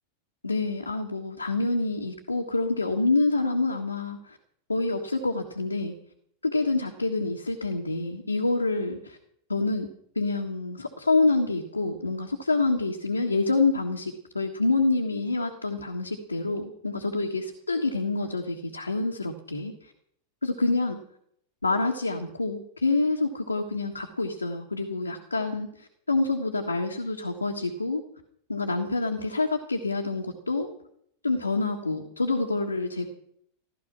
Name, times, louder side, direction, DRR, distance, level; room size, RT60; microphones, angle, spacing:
voice 1, 0.4-4.4 4.7-5.9 6.4-9.2 9.5-9.9 10.1-19.9 20.4-21.0 21.6-28.0 28.5-30.7 31.2-33.1, left 3 dB, 80° left, 1 dB, 1.6 m, -27 dB
15.5 x 13.0 x 6.0 m, 0.68 s
figure-of-eight pair, 90°, 0 cm